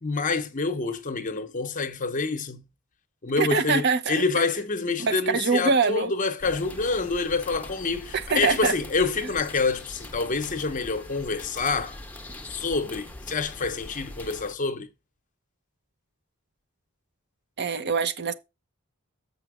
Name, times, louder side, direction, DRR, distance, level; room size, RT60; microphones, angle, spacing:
voice 1, 0.0-2.6 3.2-12.0 12.4-14.9, left 4 dB, 40° left, 0.8 m, -27 dB
voice 2, 3.4-4.2 5.0-6.1 8.1-8.7 17.6-18.3, right 5 dB, 55° right, 0.8 m, -24 dB
sound 1, 6.4-14.6, left 1 dB, 10° left, 0.8 m, -42 dB
7.2 x 5.4 x 4.8 m
head